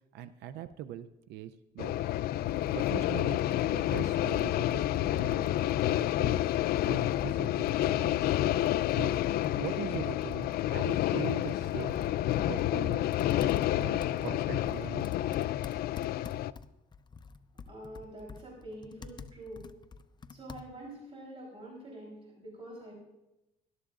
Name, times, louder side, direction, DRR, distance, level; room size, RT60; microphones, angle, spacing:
voice 1, 0.1-2.0 2.7-5.6 5.8-8.2 8.9-9.2 9.5-12.0 12.3-13.0 13.8-15.1, right 10 dB, 85° right, 11 dB, 0.6 m, -42 dB
sound 1, 1.8-16.5, left 13 dB, 65° left, 0.4 m, -29 dB
Computer keyboard, 2.5-21.0, left 5 dB, 25° left, 0.6 m, -50 dB
voice 2, 17.7-19.7 20.3-22.9, right 1 dB, 35° right, -2 dB, 4.0 m, -46 dB
20.0 x 12.0 x 2.5 m, 0.94 s
cardioid pair, 110°, 17 cm